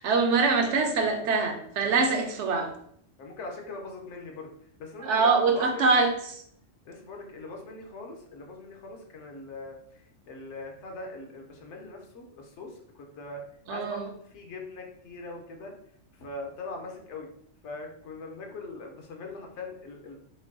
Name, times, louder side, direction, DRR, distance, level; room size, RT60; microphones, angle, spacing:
voice 1, 0.0-2.7 5.0-6.4 13.7-14.1, right 4 dB, 75° right, 4 dB, 0.9 m, -24 dB
voice 2, 3.2-4.5 4.8-5.9 6.8-13.4 13.7-15.7 16.1-17.3 17.6-20.2, left 2 dB, 70° left, 2 dB, 1.0 m, -41 dB
5.3 x 2.3 x 2.6 m, 0.66 s
omnidirectional pair, 1.3 m